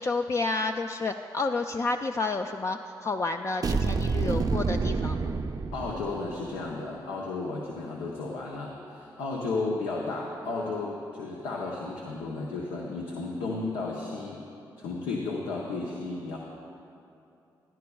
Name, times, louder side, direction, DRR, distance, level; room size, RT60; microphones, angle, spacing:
voice 1, 0.0-5.2, left 3 dB, 35° left, 5 dB, 0.4 m, -30 dB
sound 1, 3.6-6.4, right 4 dB, 45° right, 0.5 m, -28 dB
voice 2, 5.7-14.4 14.8-16.4, left 3 dB, 90° left, -2 dB, 0.8 m, -33 dB
16.0 x 11.0 x 2.3 m, 2.8 s
supercardioid pair, 45°, 9 cm